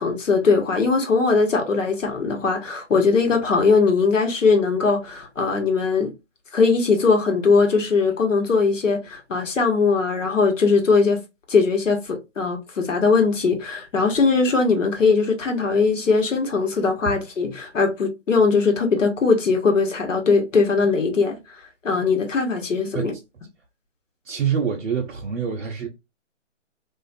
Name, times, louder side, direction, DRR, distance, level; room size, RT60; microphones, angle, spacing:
voice 1, 0.0-6.1 6.5-11.2 11.5-21.4 21.8-23.1, left 4 dB, 80° left, 1.1 m, -20 dB
voice 2, 24.3-25.9, right 7 dB, 60° right, 0.6 m, -26 dB
2.4 x 2.2 x 2.5 m
hypercardioid pair, 160°, 37 cm